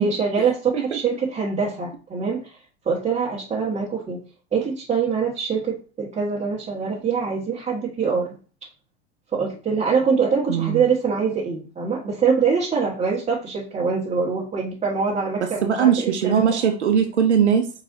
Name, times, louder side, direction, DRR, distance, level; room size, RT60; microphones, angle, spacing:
voice 1, 0.0-2.5 2.8-4.2 4.5-8.3 9.3-16.6, right 5 dB, 20° right, -5 dB, 1.5 m, -24 dB
voice 2, 10.5-10.9 15.4-17.7, right 7 dB, 90° right, 5 dB, 0.6 m, -20 dB
4.7 x 4.0 x 2.6 m, 0.36 s
hypercardioid pair, 95°, 33 cm